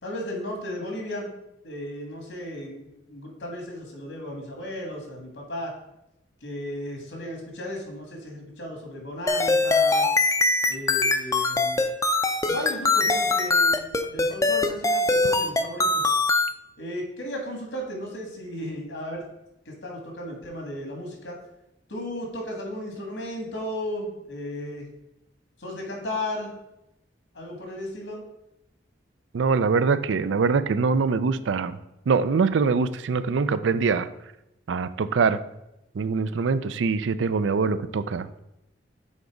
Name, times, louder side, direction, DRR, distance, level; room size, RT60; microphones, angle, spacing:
voice 1, 0.0-1.3 1.6-5.7 6.4-10.1 10.7-11.8 12.5-16.1 16.8-19.2 19.7-21.4 21.9-24.9 25.6-26.5 27.3-28.2, left 1 dB, 80° left, 1 dB, 1.9 m, -35 dB
sound 1, 9.3-16.5, left 2 dB, 15° left, 0.4 m, -22 dB
voice 2, 29.3-31.8 32.1-34.1 34.7-35.4 35.9-38.4, right 5 dB, 90° right, 13 dB, 0.4 m, -23 dB
7.2 x 3.9 x 4.8 m, 0.87 s
head